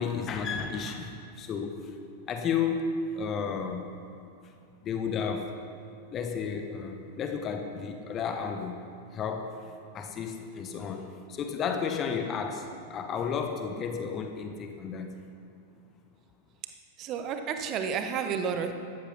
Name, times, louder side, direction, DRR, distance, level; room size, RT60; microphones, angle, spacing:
voice 1, 0.0-1.9 2.3-3.9 4.8-5.5 6.1-8.8 9.1-9.6 9.9-15.1, left 6 dB, 30° left, 5 dB, 1.2 m, -32 dB
voice 2, 17.0-18.7, right 7 dB, 35° right, 7 dB, 1.3 m, -31 dB
14.5 x 12.0 x 5.8 m, 2.4 s
figure-of-eight pair, 90°, 0 cm